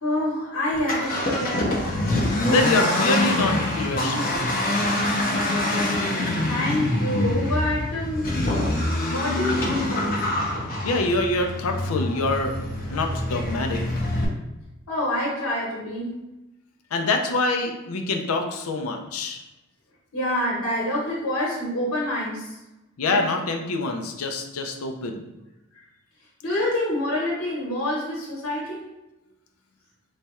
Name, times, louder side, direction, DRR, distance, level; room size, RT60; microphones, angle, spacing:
voice 1, 0.0-1.7 6.4-8.4 9.1-10.3 14.9-16.1 20.1-22.6 23.0-23.2 25.7-25.8 26.4-28.8, left 1 dB, 90° left, -5 dB, 1.2 m, -27 dB
Accelerating revving vroom, 0.7-14.2, left 1 dB, 40° left, 0.7 m, -25 dB
voice 2, 2.5-4.4 10.8-12.5 12.8-13.8 16.9-19.4 23.0-25.2, left 2 dB, 75° left, 4 dB, 0.5 m, -25 dB
3.2 x 2.3 x 4.2 m, 0.98 s
head